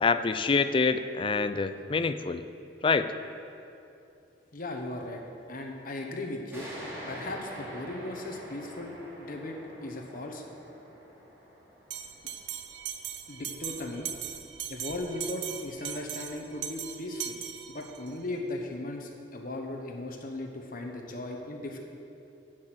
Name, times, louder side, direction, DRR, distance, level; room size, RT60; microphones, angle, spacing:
voice 1, 0.0-2.4 2.8-3.1, left 4 dB, 30° left, 11 dB, 0.4 m, -26 dB
voice 2, 4.5-5.2 5.5-6.7 7.1-8.9 9.2-9.6 9.8-10.4 13.3-14.1 14.7-17.4 17.7-21.8, left 2 dB, 50° left, 2 dB, 1.1 m, -37 dB
sound 1, 6.5-13.7, equal, 15° right, 2.7 m, -45 dB
Bell, 11.9-18.1, right 10 dB, 75° right, 0.6 m, -39 dB
10.5 x 6.2 x 7.8 m, 2.7 s
head